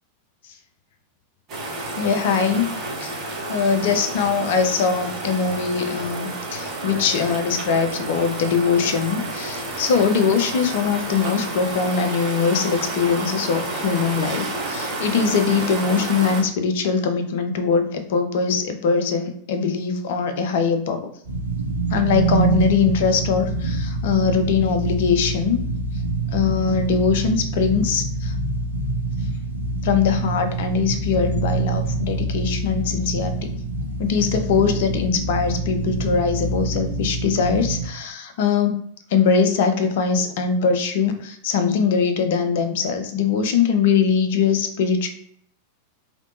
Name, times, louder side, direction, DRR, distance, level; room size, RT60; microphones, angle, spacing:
sound 1, 1.5-16.4, right 2 dB, 35° right, 1.2 m, -30 dB
voice 1, 2.0-2.7 3.0-21.1 21.9-25.6 26.3-28.3 29.8-33.3 34.0-38.8 39.1-45.1, left 6 dB, 55° left, 7 dB, 0.5 m, -21 dB
sound 2, 21.3-37.9, right 2 dB, 80° right, 0.7 m, -26 dB
3.4 x 2.8 x 2.6 m, 0.67 s
figure-of-eight pair, 90°, 0 cm